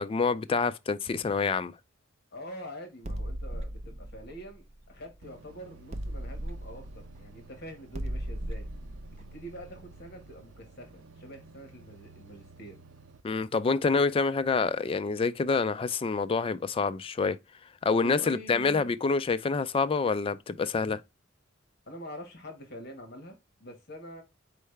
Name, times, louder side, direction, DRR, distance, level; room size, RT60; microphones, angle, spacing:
voice 1, 0.0-1.7 13.2-17.4 17.9-21.0, left 4 dB, 30° left, 0.3 m, -27 dB
voice 2, 2.3-8.7 9.2-12.8 18.0-18.9 21.9-24.2, equal, 55° left, 1.5 m, -45 dB
sound 1, 3.0-5.4 5.9-10.6, right 1 dB, 35° right, 0.6 m, -38 dB
sound 2, 5.2-13.2, right 3 dB, 75° right, 0.6 m, -53 dB
4.6 x 3.3 x 3.2 m
head